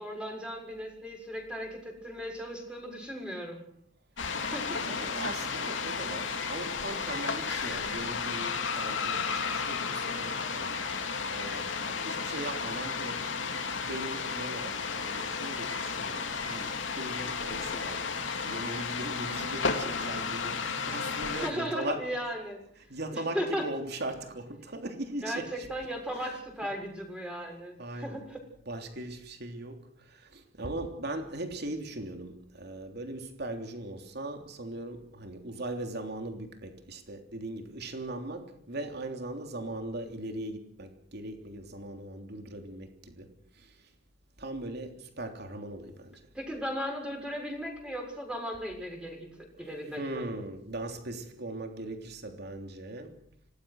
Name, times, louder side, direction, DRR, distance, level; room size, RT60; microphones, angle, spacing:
voice 1, 0.0-3.6 4.4-4.8 21.4-22.6 23.1-23.7 25.2-28.4 46.3-50.3, equal, 5° right, 6.9 m, -36 dB
sound 1, 4.2-21.5, left 5 dB, 75° left, 2.8 m, -33 dB
voice 2, 4.6-13.4 13.8-22.1 22.7-25.7 26.1-26.4 27.8-28.3 28.6-43.9 44.4-46.3 49.6-53.2, right 2 dB, 60° right, 3.3 m, -39 dB
26.0 x 19.0 x 6.4 m
head